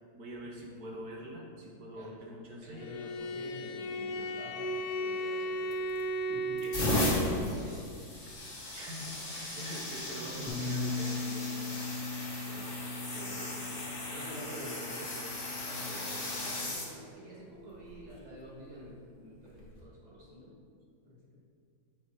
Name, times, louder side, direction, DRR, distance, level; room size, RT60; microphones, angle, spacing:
voice 1, 0.1-2.8 6.6-7.0 8.7-11.9 12.4-12.5, equal, 60° right, -2 dB, 1.7 m, -44 dB
voice 2, 2.6-5.8 6.3-6.6 7.1-7.9 12.4-12.7 13.1-13.5 14.1-15.1 15.6-20.5 21.0-21.4, equal, 25° right, -6 dB, 1.7 m, -48 dB
Bowed string instrument, 2.7-7.5, equal, 80° left, 1.3 m, -35 dB
sound 1, 5.7-6.1 6.6-16.9 17.7-18.0 19.5-19.7, left 1 dB, 40° left, 1.6 m, -36 dB
Bass guitar, 10.5-16.7, left 3 dB, ahead, 0.8 m, -39 dB
8.2 x 4.6 x 4.8 m, 2.3 s
omnidirectional pair, 1.9 m